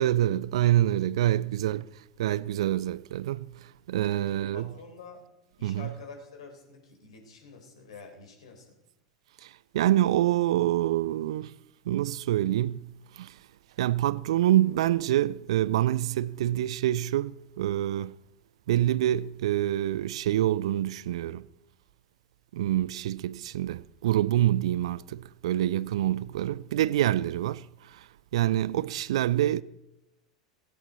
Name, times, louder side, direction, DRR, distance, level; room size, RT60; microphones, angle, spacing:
voice 1, 0.0-1.9 2.2-4.7 5.6-5.9 9.4-11.6 11.9-12.8 13.1-13.4 13.8-18.2 18.7-21.5 22.5-29.6, right 13 dB, 60° right, 0.4 m, -26 dB
voice 2, 4.1-5.2 5.6-8.8, left 4 dB, 65° left, 4.0 m, -47 dB
16.5 x 16.5 x 4.2 m
figure-of-eight pair, 85°, 3 cm